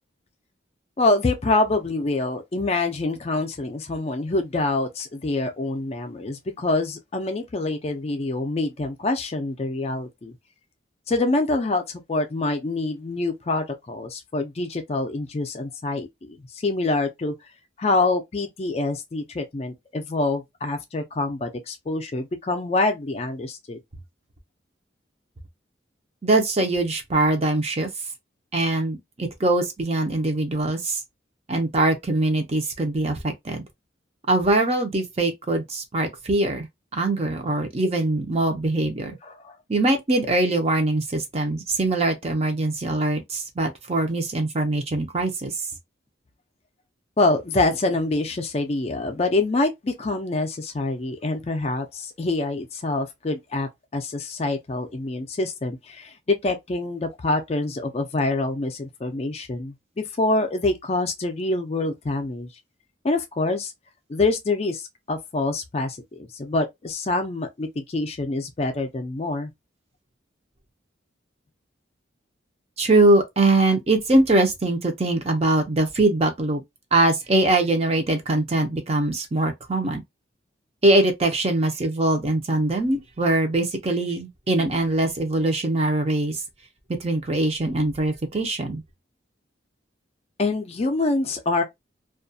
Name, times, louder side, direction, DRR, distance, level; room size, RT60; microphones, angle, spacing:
voice 1, 1.0-10.3 11.1-17.3 17.8-23.8 39.2-39.5 47.2-62.5 63.0-63.7 64.1-69.5 90.4-91.6, left 2 dB, 35° left, 0.4 m, -26 dB
voice 2, 26.2-27.9 28.5-31.0 31.5-33.6 34.3-36.7 36.9-39.2 39.7-45.7 72.8-76.6 76.9-80.0 80.8-86.4 87.0-88.8, right 2 dB, 30° right, 0.5 m, -22 dB
2.3 x 2.2 x 2.6 m
head